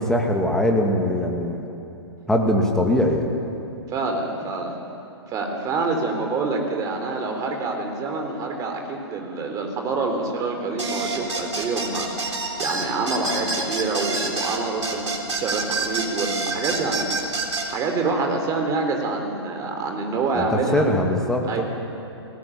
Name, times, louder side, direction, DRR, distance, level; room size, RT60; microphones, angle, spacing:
voice 1, 0.0-1.7 2.3-3.3 20.3-21.6, left 1 dB, 5° left, 1 dB, 2.3 m, -21 dB
voice 2, 3.9-4.7 5.3-17.1 17.6-20.9 21.4-21.6, right 3 dB, 25° right, 3 dB, 3.4 m, -26 dB
sound 1, 10.8-17.7, right 3 dB, 90° right, 3.5 m, -27 dB
18.0 x 17.5 x 8.8 m, 2.9 s
hypercardioid pair, 130°, 15 cm